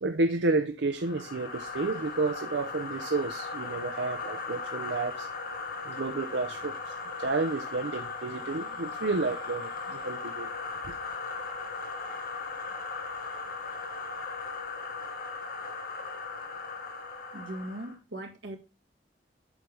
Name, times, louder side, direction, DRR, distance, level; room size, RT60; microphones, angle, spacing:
voice 1, 0.0-5.3 5.8-10.5 10.9-11.0, right 3 dB, 65° right, 0.6 m, -31 dB
sound 1, 0.9-18.0, left 4 dB, 50° left, 1.6 m, -38 dB
voice 2, 17.3-18.6, right 1 dB, 85° right, 1.7 m, -39 dB
8.0 x 5.4 x 3.4 m
head